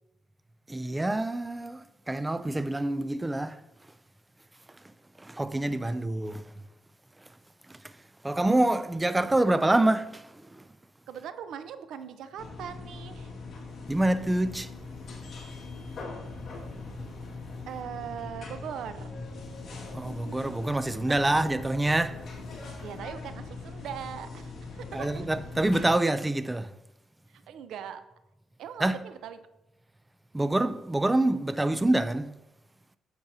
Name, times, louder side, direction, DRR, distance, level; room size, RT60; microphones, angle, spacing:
voice 1, 0.7-3.6 5.2-6.5 7.7-7.8 8.2-10.6 13.9-14.7 19.9-22.2 24.9-26.7 28.8-29.0 30.3-32.4, right 1 dB, 15° right, 0.3 m, -26 dB
voice 2, 11.1-13.3 15.9-16.1 17.7-19.2 22.8-25.3 27.3-28.0 28.6-29.4, right 8 dB, 80° right, 0.6 m, -40 dB
sound 1, 12.4-25.9, left 3 dB, 55° left, 1.9 m, -41 dB
10.0 x 6.9 x 2.7 m
cardioid pair, 90°, 0 cm